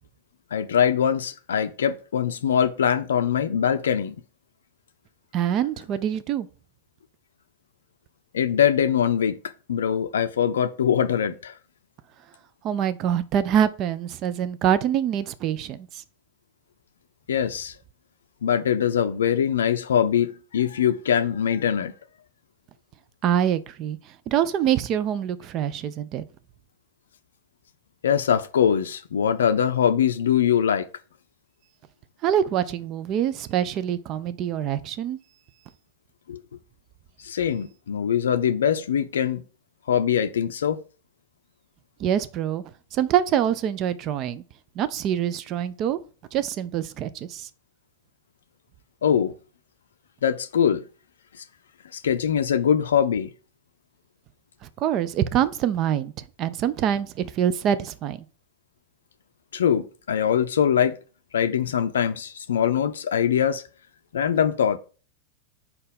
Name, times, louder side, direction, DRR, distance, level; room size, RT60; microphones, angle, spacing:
voice 1, 0.5-4.2 8.3-9.4 9.7-11.5 17.3-17.7 18.4-21.9 28.0-30.9 36.3-36.4 37.2-39.4 39.9-40.8 49.0-49.3 50.2-50.8 51.4-51.5 51.9-53.3 59.5-61.0 61.3-63.6 64.1-64.8, left 8 dB, 65° left, 0.5 m, -22 dB
voice 2, 5.3-6.5 12.6-15.8 23.2-24.0 24.3-26.2 32.2-35.2 42.0-42.6 42.9-44.4 44.8-46.0 46.3-47.5 54.8-56.1 56.4-58.2, right 10 dB, 35° right, 0.5 m, -25 dB
4.3 x 4.2 x 5.1 m
figure-of-eight pair, 90°, 0 cm